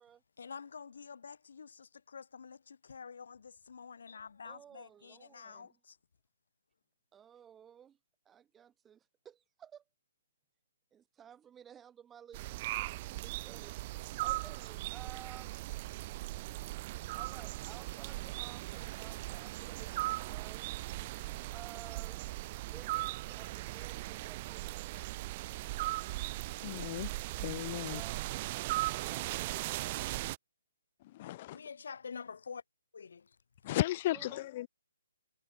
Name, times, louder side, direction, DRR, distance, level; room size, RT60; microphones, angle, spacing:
voice 1, 0.4-6.0 31.5-32.6 32.9-33.4, left 6 dB, 60° left, 6.3 m, -48 dB
voice 2, 4.4-5.7 7.1-8.0 8.3-9.8 10.9-13.8 14.2-15.6 17.1-20.7 21.5-22.2 22.6-25.0 27.9-28.2 29.0-29.9 34.1-34.5, right 9 dB, 10° right, 3.7 m, -55 dB
sound 1, 12.3-30.4, right 19 dB, 30° right, 1.9 m, -38 dB
voice 3, 26.6-27.1 27.4-28.0 31.0-31.6 33.6-34.7, left 15 dB, 35° left, 2.3 m, -35 dB
figure-of-eight pair, 140°, 0 cm